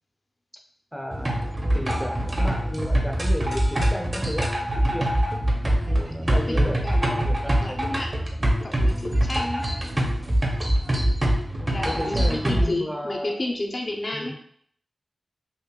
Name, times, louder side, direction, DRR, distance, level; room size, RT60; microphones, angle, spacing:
voice 1, 0.9-5.3 5.7-7.9 8.7-9.2 10.8-11.2 11.8-13.4 14.1-14.3, equal, ahead, 2 dB, 0.6 m, -34 dB
sound 1, 1.1-12.7, right 1 dB, 35° right, 0.8 m, -24 dB
voice 2, 6.5-7.3 7.6-8.1 8.6-9.7 11.7-14.3, left 2 dB, 45° left, 1 dB, 0.5 m, -31 dB
5.7 x 2.1 x 2.2 m, 0.63 s
wide cardioid pair, 60°, 0 cm